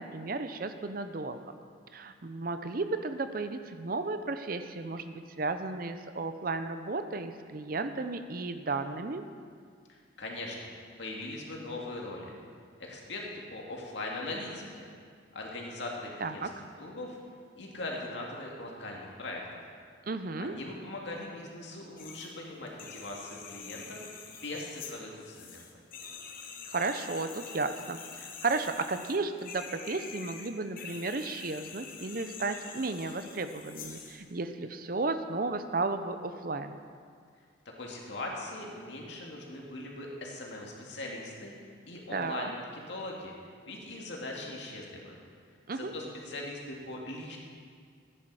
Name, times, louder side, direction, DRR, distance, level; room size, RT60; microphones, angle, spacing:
voice 1, 0.0-1.4 1.9-9.2 16.2-16.5 20.1-20.5 26.7-36.8 42.1-42.5 45.7-45.9, right 3 dB, 45° right, 9 dB, 0.6 m, -34 dB
voice 2, 9.9-10.7 11.0-12.3 12.8-14.9 15.3-16.4 16.8-17.2 17.6-19.4 20.4-24.0 24.3-25.6 37.8-42.6 42.9-43.3 43.7-45.2 45.8-47.4, left 2 dB, 65° left, -1 dB, 2.2 m, -40 dB
sound 1, 22.0-22.3 22.7-34.2, left 6 dB, 45° left, 1.2 m, -46 dB
15.0 x 10.0 x 4.9 m, 2.1 s
head